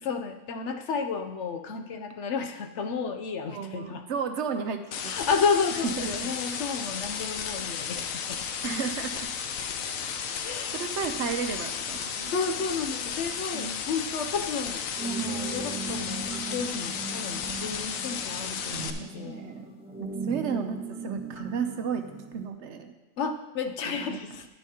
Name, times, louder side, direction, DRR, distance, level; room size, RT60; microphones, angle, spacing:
voice 1, 0.0-4.0 5.0-8.4 10.4-10.8 12.3-19.4 23.2-24.5, left 5 dB, 65° left, 6 dB, 0.9 m, -32 dB
voice 2, 3.5-5.1 6.0-6.3 8.6-9.3 10.7-12.3 13.5-13.9 18.7-19.7 20.0-22.0 22.3-22.9 23.9-24.2, right 6 dB, 65° right, 7 dB, 0.9 m, -33 dB
sound 1, 4.9-18.9, left 7 dB, 85° left, 1.1 m, -34 dB
sound 2, 15.0-22.5, right 5 dB, 5° right, 1.4 m, -38 dB
10.5 x 9.9 x 2.9 m, 1.1 s
omnidirectional pair, 1.4 m